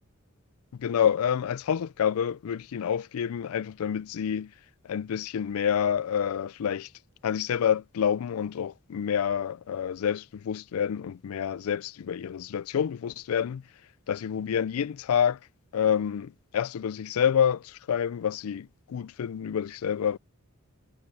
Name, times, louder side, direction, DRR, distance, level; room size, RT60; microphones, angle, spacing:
voice 1, 0.7-4.5 4.8-6.9 7.2-13.6 14.1-15.4 15.7-20.2, left 8 dB, 80° left, 0.4 m, -28 dB
head